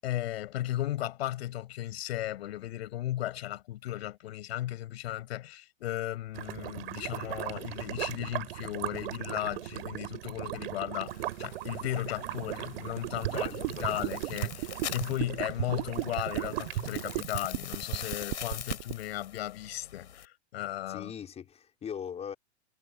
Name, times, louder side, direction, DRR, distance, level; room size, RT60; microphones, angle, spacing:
voice 1, 0.0-21.1, left 14 dB, 65° left, 7.5 m, -35 dB
sound 1, 6.3-17.2, right 15 dB, 60° right, 6.4 m, -39 dB
sound 2, 11.1-20.3, left 9 dB, 85° left, 5.9 m, -44 dB
sound 3, 13.0-18.9, right 21 dB, 45° right, 0.8 m, -34 dB
voice 2, 13.3-14.0 20.9-22.3, left 8 dB, 20° left, 5.8 m, -41 dB
hypercardioid pair, 135°, 34 cm